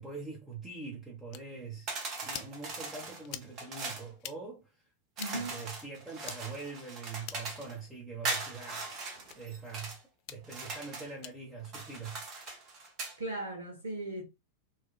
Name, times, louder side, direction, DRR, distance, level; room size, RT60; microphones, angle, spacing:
voice 1, 0.0-1.9 2.2-4.8 5.3-8.9 9.3-10.0 10.3-12.2, right 4 dB, 10° right, 0.8 m, -43 dB
sound 1, 1.3-1.4 2.2-2.5 3.2-3.5 4.2-4.4 5.2-5.3 6.2-6.4 7.2-7.5 8.2-8.4 9.2-9.4 10.2-10.4 11.2-11.3 12.3-12.6, left 11 dB, 45° left, 0.3 m, -44 dB
sound 2, 1.9-4.1 5.2-7.7 8.2-10.0 10.4-11.1 11.6-13.2, right 3 dB, 35° right, 0.9 m, -40 dB
voice 2, 5.2-5.6 13.2-14.2, right 2 dB, 75° right, 0.6 m, -37 dB
3.1 x 2.2 x 2.3 m
figure-of-eight pair, 90°, 0 cm